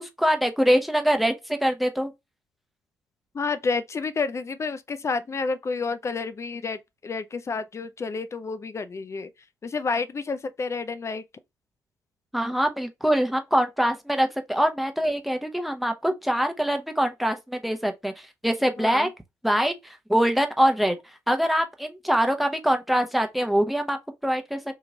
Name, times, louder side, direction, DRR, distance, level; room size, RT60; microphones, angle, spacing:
voice 1, 0.0-2.1 12.3-18.1 18.4-19.1 19.4-21.0 21.3-24.0 24.2-24.6, equal, ahead, 0.8 m, -24 dB
voice 2, 3.3-9.3 9.6-11.2 18.8-19.1, left 4 dB, 30° left, 0.4 m, -30 dB
2.9 x 2.3 x 3.9 m
hypercardioid pair, 45°, 9 cm